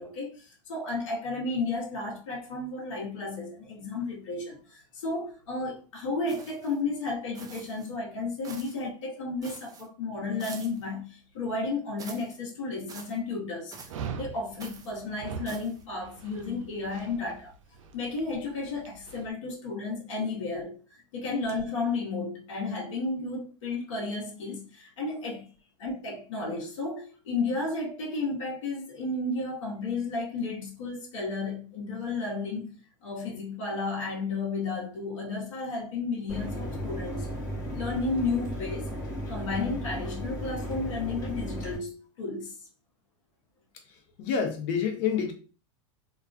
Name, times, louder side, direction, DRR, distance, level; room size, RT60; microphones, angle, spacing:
voice 1, 0.0-13.7 14.1-17.5 17.9-20.8 21.1-25.5 25.8-32.7 33.0-37.3 37.7-38.9 39.3-42.6, left 3 dB, 85° left, 0.9 m, -33 dB
sound 1, 6.3-6.8 7.3-7.9 8.4-8.9 9.4-9.9 10.4-10.9 12.0-12.4 12.9-13.2 13.7-14.1 14.6-14.9 15.5-15.8, right 5 dB, 20° right, 0.4 m, -46 dB
Dog, 13.9-19.3, right 6 dB, 90° right, 0.4 m, -42 dB
Mechanisms, 36.3-41.8, equal, 20° left, 1.0 m, -35 dB
voice 2, 44.2-45.3, left 7 dB, 55° left, 0.6 m, -27 dB
2.3 x 2.2 x 2.4 m
hypercardioid pair, 115°, 16 cm